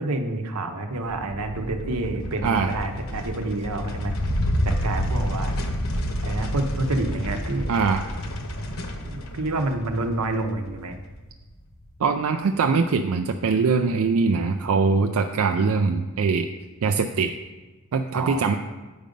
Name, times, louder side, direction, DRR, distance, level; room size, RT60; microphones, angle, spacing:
voice 1, 0.0-4.1 4.6-5.5 6.2-7.7 9.1-11.0 18.1-18.6, right 2 dB, 90° right, 5 dB, 0.9 m, -28 dB
sound 1, 1.0-11.6, equal, 65° left, 1.0 m, -29 dB
voice 2, 7.7-8.0 12.0-16.5 16.8-17.4 17.9-18.6, right 4 dB, 65° right, 5 dB, 0.4 m, -22 dB
8.8 x 5.1 x 5.2 m, 1.2 s
head